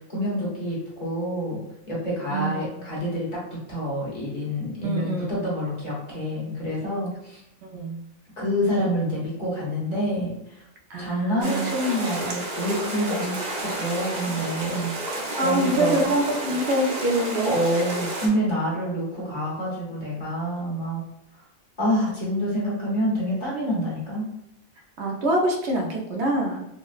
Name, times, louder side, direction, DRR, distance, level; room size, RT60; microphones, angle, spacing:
voice 1, 0.1-7.4 8.4-10.6 11.0-15.1 15.4-16.1 17.4-21.0 21.8-24.3, equal, 40° left, -6 dB, 1.1 m, -27 dB
voice 2, 2.3-2.7 4.8-5.6 7.6-8.0 10.9-11.7 15.4-17.8 25.0-26.7, right 1 dB, 75° right, 1 dB, 0.9 m, -25 dB
sound 1, 11.4-18.3, right 1 dB, 45° right, 0.6 m, -31 dB
4.0 x 2.0 x 2.3 m, 0.82 s
omnidirectional pair, 1.2 m